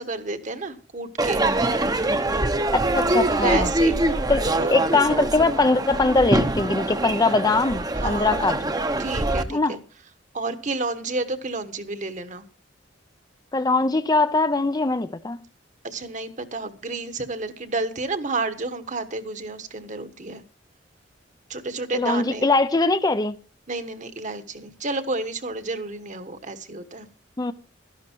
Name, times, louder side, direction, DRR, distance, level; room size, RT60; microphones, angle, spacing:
voice 1, 0.0-1.5 3.3-4.2 4.4-4.7 8.0-8.3 9.0-9.8 10.3-12.4 15.8-20.4 21.5-22.4 23.7-27.1, right 3 dB, 40° right, 1.3 m, -30 dB
Crowd / Fireworks, 1.2-9.4, right 2 dB, 20° right, 0.8 m, -24 dB
voice 2, 2.7-3.7 4.3-4.4 4.7-8.6 9.5-9.8 13.5-15.4 21.9-23.3 27.4-27.5, left 3 dB, 20° left, 0.5 m, -21 dB
13.0 x 11.5 x 4.5 m
head